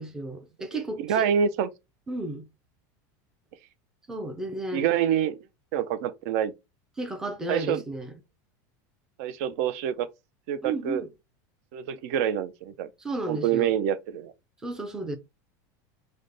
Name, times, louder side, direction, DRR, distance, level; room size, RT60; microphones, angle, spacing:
voice 1, 0.0-1.3 2.1-2.5 4.1-4.9 7.0-8.1 10.6-11.1 13.0-13.7 14.6-15.2, right 2 dB, 5° right, 0.5 m, -33 dB
voice 2, 1.0-1.7 4.7-5.4 5.7-6.5 7.5-7.8 9.2-10.1 10.5-11.0 11.7-12.9 13.3-14.3, right 9 dB, 55° right, 0.5 m, -26 dB
4.9 x 2.1 x 3.9 m
supercardioid pair, 170°, 10 cm